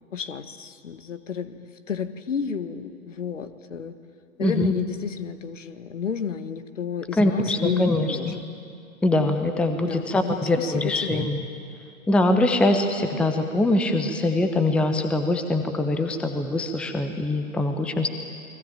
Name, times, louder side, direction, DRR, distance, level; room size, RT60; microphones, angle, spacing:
voice 1, 0.0-4.0 4.4-8.4 9.8-11.3, left 7 dB, 60° left, 11 dB, 1.7 m, -31 dB
voice 2, 4.4-4.7 7.2-8.4 9.0-11.4 12.1-18.1, left 2 dB, 5° left, 7 dB, 0.9 m, -23 dB
29.0 x 22.0 x 9.0 m, 2.4 s
figure-of-eight pair, 120°, 42 cm